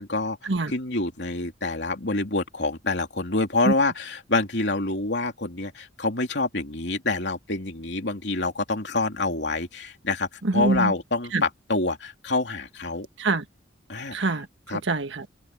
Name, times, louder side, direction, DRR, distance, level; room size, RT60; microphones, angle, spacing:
voice 1, 0.0-0.4 0.7-13.1 13.9-14.2 14.7-14.8, left 2 dB, 65° left, 3.4 m, -27 dB
voice 2, 10.4-10.9 11.3-11.4 13.2-13.4 14.1-15.3, right 3 dB, 80° right, 1.6 m, -25 dB
open air
head